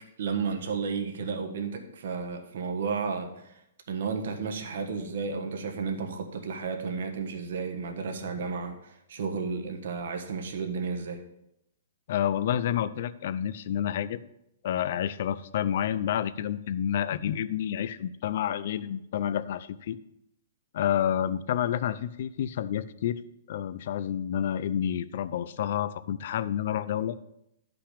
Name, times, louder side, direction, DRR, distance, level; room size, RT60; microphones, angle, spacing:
voice 1, 0.2-3.5 3.9-11.2, right 5 dB, 55° right, 4 dB, 1.4 m, -32 dB
voice 2, 12.1-14.2 14.6-20.0 20.7-23.2 23.5-27.2, left 10 dB, 40° left, 16 dB, 0.4 m, -29 dB
12.0 x 5.9 x 5.0 m, 0.82 s
hypercardioid pair, 175°, 0 cm